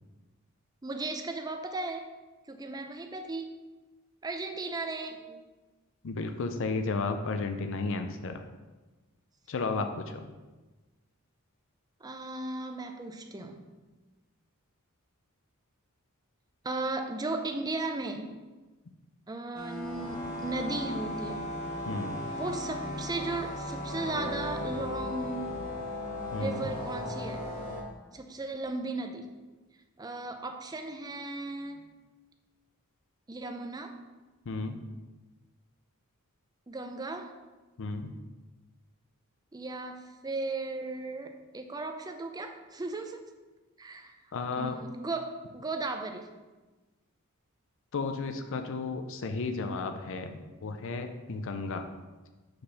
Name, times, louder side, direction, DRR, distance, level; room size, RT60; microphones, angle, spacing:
voice 1, 0.8-2.1 2.5-3.5 4.2-5.4 12.0-13.6 16.6-18.3 19.3-21.5 22.4-25.4 26.4-27.5 28.1-29.3 30.0-31.9 33.3-34.0 36.7-37.3 39.5-43.2 43.8-44.2 44.6-46.3, right 2 dB, 15° right, 5 dB, 0.5 m, -36 dB
voice 2, 6.0-8.4 9.5-10.3 21.9-22.2 26.3-26.7 34.5-34.8 37.8-38.1 44.3-44.8 47.9-51.9, left 3 dB, 60° left, 7 dB, 0.5 m, -33 dB
sound 1, 19.5-27.8, left 1 dB, 35° left, 1.2 m, -36 dB
5.3 x 4.3 x 5.7 m, 1.2 s
head